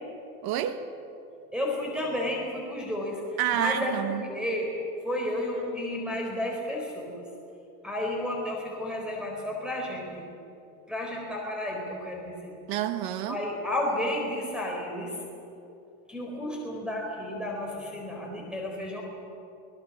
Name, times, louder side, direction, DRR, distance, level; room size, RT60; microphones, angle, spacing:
voice 1, 0.4-0.9 3.4-4.2 12.7-13.4, right 11 dB, 60° right, 9 dB, 1.7 m, -29 dB
voice 2, 1.5-4.7 5.0-7.2 7.8-10.3 10.9-12.5 13.3-15.2 16.1-19.0, left 1 dB, ahead, -1 dB, 4.4 m, -32 dB
24.0 x 19.0 x 7.4 m, 2.8 s
supercardioid pair, 120°, 42 cm